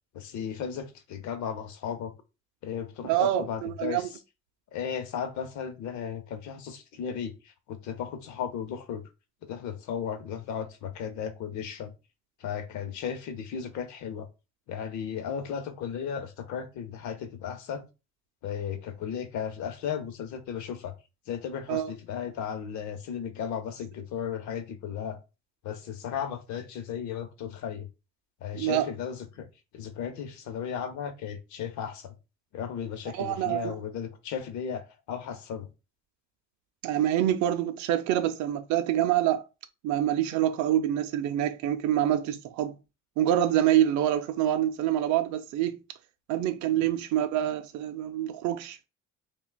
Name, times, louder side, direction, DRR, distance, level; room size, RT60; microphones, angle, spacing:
voice 1, 0.1-2.1 2.6-4.1 4.7-7.3 7.7-9.0 9.4-11.9 12.4-14.3 14.7-17.9 18.4-20.9 21.3-25.2 25.6-27.9 28.4-29.5 29.7-32.1 32.5-35.7 46.8-46.9, left 8 dB, 70° left, 0.7 m, -35 dB
voice 2, 3.0-4.1 21.7-21.9 28.5-28.9 33.1-33.7 36.8-39.4 39.8-42.8 43.2-45.8 46.3-48.8, right 11 dB, 70° right, 0.5 m, -26 dB
5.7 x 2.3 x 2.2 m
cardioid pair, 120°, 30 cm